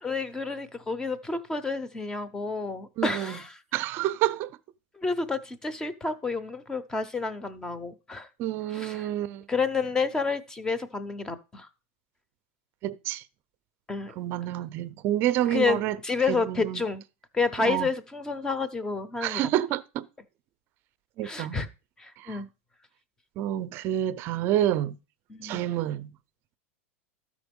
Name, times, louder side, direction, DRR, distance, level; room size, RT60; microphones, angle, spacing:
voice 1, 0.0-3.6 5.0-8.3 8.7-9.1 9.5-11.7 13.9-14.1 15.5-17.0 17.3-19.5 21.2-21.7 22.0-22.5 25.3-25.6, left 4 dB, 10° left, 0.7 m, -30 dB
voice 2, 3.0-3.4 3.7-4.5 8.4-9.5 12.8-13.2 14.2-16.0 16.3-16.8 17.6-17.9 19.2-20.1 21.2-21.6 22.2-22.4 23.4-25.0 25.4-26.1, right 13 dB, 35° right, 0.6 m, -28 dB
12.5 x 5.1 x 5.3 m
supercardioid pair, 160°, 7 cm